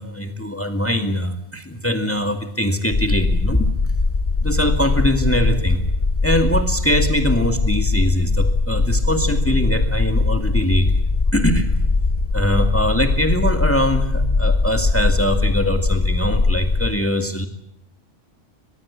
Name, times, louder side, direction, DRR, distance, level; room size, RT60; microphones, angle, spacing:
voice 1, 0.0-3.7 4.4-5.8 6.2-10.9 11.3-11.7 12.3-17.5, equal, 10° left, 6 dB, 2.2 m, -22 dB
sound 1, 2.9-16.9, left 3 dB, 35° left, 1.1 m, -20 dB
24.5 x 21.0 x 8.5 m, 0.76 s
omnidirectional pair, 1.2 m